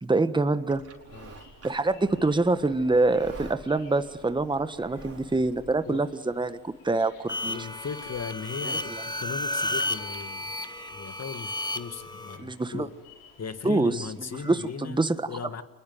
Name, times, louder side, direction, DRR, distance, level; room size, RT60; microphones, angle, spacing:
voice 1, 0.0-0.8 1.6-7.7 8.7-8.8 12.4-12.9 13.6-13.9 14.4-15.3, right 2 dB, 10° right, 12 dB, 1.3 m, -25 dB
Livestock farm animals working animals, 0.7-5.7, right 3 dB, 35° right, 4.7 m, -47 dB
sound 1, 1.1-14.7, left 4 dB, 90° left, 5.9 m, -55 dB
sound 2, 7.3-12.4, left 1 dB, 10° left, 1.7 m, -33 dB
voice 2, 7.4-10.5 10.9-13.0 13.4-15.6, left 6 dB, 35° left, 11 dB, 2.0 m, -38 dB
25.0 x 21.0 x 9.4 m, 1.2 s
hypercardioid pair, 60°, 42 cm